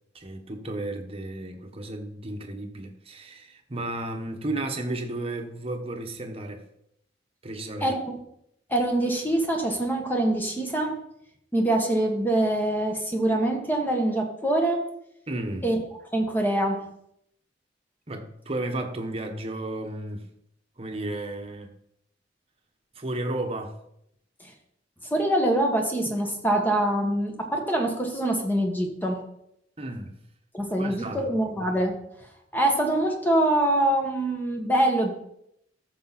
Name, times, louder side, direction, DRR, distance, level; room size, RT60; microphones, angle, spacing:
voice 1, 0.1-6.6 7.4-7.9 15.3-15.7 18.1-20.3 20.8-21.7 22.9-23.8 29.8-30.2 30.8-31.3, right 2 dB, 30° right, 1.3 m, -33 dB
voice 2, 7.8-8.1 8.7-10.9 11.5-14.8 15.6-15.8 16.1-16.8 25.1-29.2 30.5-32.0 32.5-35.1, right 1 dB, 10° left, 1.6 m, -24 dB
14.0 x 6.8 x 4.2 m
head